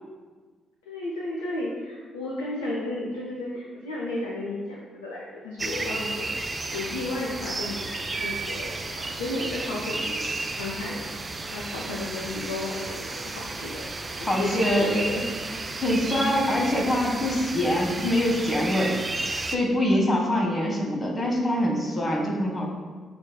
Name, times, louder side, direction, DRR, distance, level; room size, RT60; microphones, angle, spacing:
voice 1, 0.9-6.3 6.7-7.8 8.1-11.0 11.4-13.8 14.2-15.6, left 2 dB, 80° left, -4 dB, 0.4 m, -33 dB
sound 1, 5.6-19.6, right 3 dB, 30° right, 0.3 m, -33 dB
voice 2, 14.2-14.9 15.8-18.9 19.4-22.7, left 1 dB, 25° left, -1 dB, 1.0 m, -24 dB
6.0 x 2.4 x 2.2 m, 1.5 s
hypercardioid pair, 45°, 0 cm